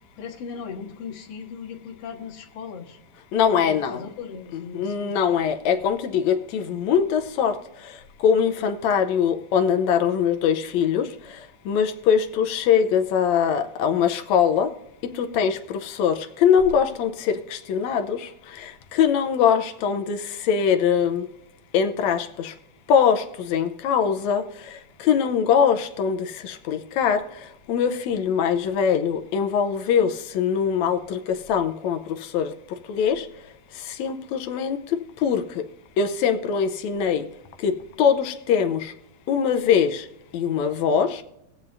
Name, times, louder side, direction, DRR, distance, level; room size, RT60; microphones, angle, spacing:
voice 1, 0.2-3.0 3.6-5.2, left 6 dB, 55° left, -2 dB, 2.4 m, -37 dB
voice 2, 3.3-4.0 4.7-7.6 8.2-11.1 11.7-14.7 15.2-18.2 18.9-21.3 21.7-22.5 22.9-24.4 25.0-26.2 26.4-27.2 27.7-31.2 31.5-32.0 32.3-32.5 32.9-33.2 34.0-34.8 35.2-35.4 36.0-37.2 37.6-38.9 39.3-40.0 40.3-41.2, left 7 dB, 75° left, 7 dB, 1.9 m, -22 dB
20.0 x 7.5 x 2.7 m, 0.86 s
omnidirectional pair, 3.6 m